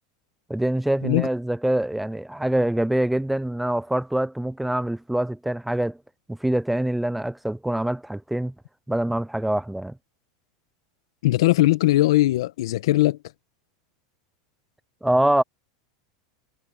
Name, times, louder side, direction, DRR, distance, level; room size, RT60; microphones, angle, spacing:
voice 1, 0.5-6.0 6.3-8.5 8.9-9.9 15.0-15.4, right 1 dB, 5° right, 0.4 m, -24 dB
voice 2, 11.2-13.2, left 17 dB, 80° left, 1.1 m, -19 dB
supercardioid pair, 140°, 3 cm